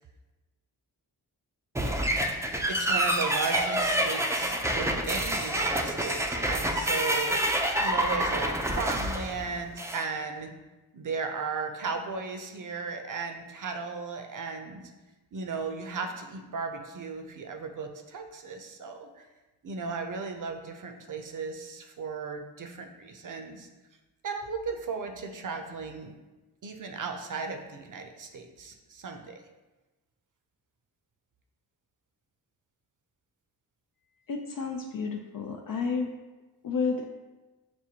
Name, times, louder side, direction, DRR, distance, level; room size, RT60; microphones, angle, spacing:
sound 1, 1.7-10.1, right 1 dB, 5° right, 0.4 m, -28 dB
voice 1, 2.7-7.4 7.8-10.5 10.9-14.9 15.3-19.2 19.6-23.7 24.2-26.1 26.6-29.4, right 4 dB, 50° right, 5 dB, 0.6 m, -36 dB
voice 2, 34.3-36.1 36.6-37.1, left 5 dB, 55° left, 2 dB, 0.5 m, -31 dB
6.1 x 2.1 x 2.8 m, 1.1 s
cardioid pair, 45°, 42 cm